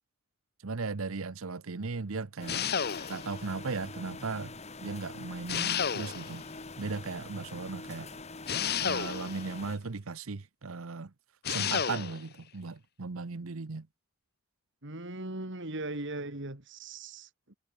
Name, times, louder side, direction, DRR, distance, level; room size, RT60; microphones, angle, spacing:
voice 1, 0.6-2.7 3.1-4.5 4.8-6.5 6.8-8.2 8.8-11.1 11.5-13.9, right 4 dB, 75° right, 0.8 m, -37 dB
sound 1, 2.4-9.8, left 3 dB, 30° left, 2.0 m, -45 dB
sound 2, 2.5-3.4 5.5-6.4 8.5-9.5 11.4-12.2, left 7 dB, 50° left, 1.1 m, -31 dB
voice 2, 14.8-17.6, right 2 dB, 55° right, 2.7 m, -39 dB
head